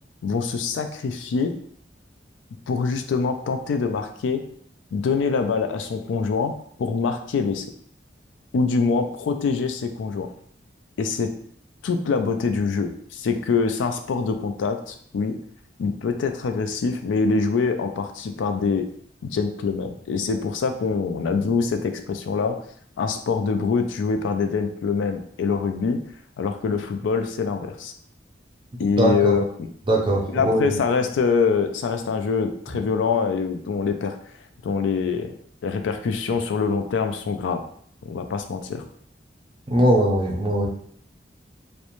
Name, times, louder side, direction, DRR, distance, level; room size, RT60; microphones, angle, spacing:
voice 1, 0.2-1.5 2.7-4.4 4.9-6.5 6.8-7.6 8.5-10.3 11.0-11.3 11.8-15.3 15.8-18.9 19.2-22.6 23.0-26.0 26.4-27.9 28.8-29.4 30.3-34.2 34.6-35.3 35.6-37.6 38.0-38.8, left 5 dB, 90° left, 6 dB, 0.3 m, -24 dB
voice 2, 28.8-29.3 29.9-30.8 39.7-40.7, right 1 dB, 25° right, -1 dB, 0.5 m, -20 dB
2.5 x 2.1 x 2.9 m, 0.62 s
head